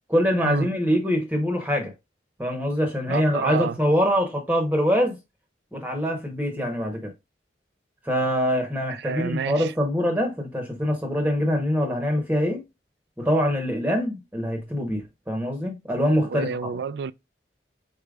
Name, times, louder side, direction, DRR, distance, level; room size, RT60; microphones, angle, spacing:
voice 1, 0.1-1.9 2.4-5.2 5.7-7.1 8.0-12.6 13.2-16.6, equal, 10° right, 0.9 m, -24 dB
voice 2, 3.1-3.8 6.6-6.7 8.9-9.7 16.2-17.1, right 6 dB, 70° right, 0.3 m, -29 dB
4.9 x 4.3 x 2.3 m
head